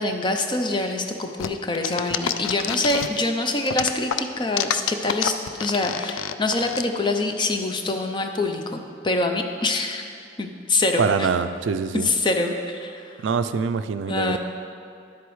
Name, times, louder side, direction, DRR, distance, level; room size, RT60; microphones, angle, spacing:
voice 1, 0.0-5.3 5.6-10.0 10.4-11.3 11.9-13.1 14.1-14.4, left 2 dB, 25° left, 5 dB, 0.5 m, -25 dB
sound 1, 1.4-3.3 3.7-6.8, left 9 dB, 85° left, 0.4 m, -27 dB
voice 2, 11.0-12.1 13.2-14.4, right 5 dB, 70° right, 11 dB, 0.4 m, -24 dB
10.5 x 8.1 x 3.1 m, 2.5 s
head